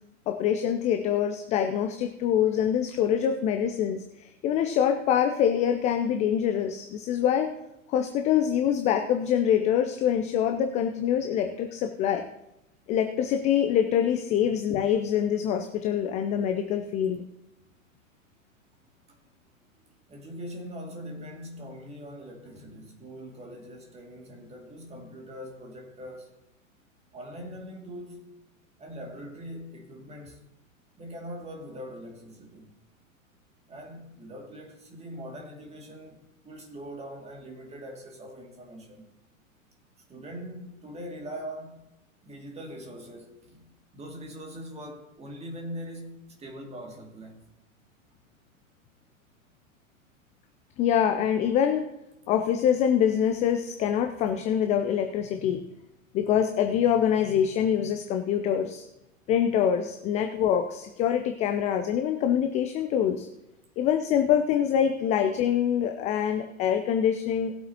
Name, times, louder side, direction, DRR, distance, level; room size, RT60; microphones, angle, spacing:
voice 1, 0.3-7.5 7.9-12.2 12.9-17.2 50.8-51.8 52.3-55.7 56.1-58.8 59.3-63.3 63.8-67.5, left 9 dB, 15° left, 0.5 m, -25 dB
voice 2, 18.8-19.4 20.1-26.3 27.1-28.3 28.8-30.4 31.0-32.8 33.7-39.1 40.1-41.8 42.2-47.5, equal, 15° right, 2.4 m, -42 dB
19.0 x 7.8 x 2.9 m
figure-of-eight pair, 100°, 42 cm